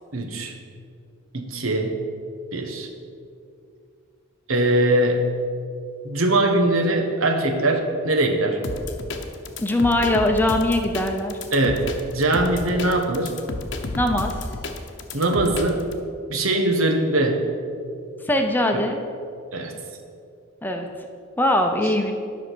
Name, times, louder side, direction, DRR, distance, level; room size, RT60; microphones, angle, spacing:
voice 1, 0.1-0.5 1.3-2.0 2.5-2.9 4.5-5.2 6.0-8.6 11.5-13.3 15.1-15.8 16.3-17.4 19.5-19.7, right 1 dB, 85° right, 4 dB, 1.2 m, -21 dB
sound 1, 8.6-16.0, left 2 dB, 60° left, 0.9 m, -31 dB
voice 2, 9.6-11.4 13.9-14.3 18.2-19.0 20.6-20.9 21.4-22.1, left 1 dB, 10° left, 4 dB, 0.7 m, -21 dB
10.5 x 6.2 x 6.2 m, 2.4 s
head